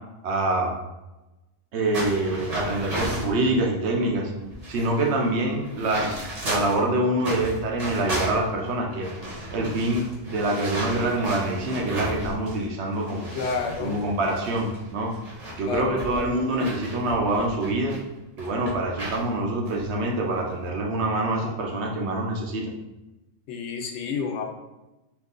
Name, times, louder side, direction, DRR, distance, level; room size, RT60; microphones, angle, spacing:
voice 1, 0.2-0.7 1.7-4.3 4.7-9.1 9.5-13.3 13.8-15.1 15.6-18.0 18.4-22.7, right 2 dB, 75° right, 0 dB, 0.9 m, -25 dB
sound 1, 1.9-3.4 4.1-4.2 4.4-6.8 7.2-12.6 12.9-18.0 18.4-19.2 19.6-19.8 20.3-20.6, equal, 40° right, 0.9 m, -34 dB
voice 2, 13.4-14.0 15.7-16.2 23.5-24.4, left 5 dB, 80° left, 3 dB, 0.9 m, -29 dB
3.0 x 2.5 x 3.6 m, 1.0 s
omnidirectional pair, 1.2 m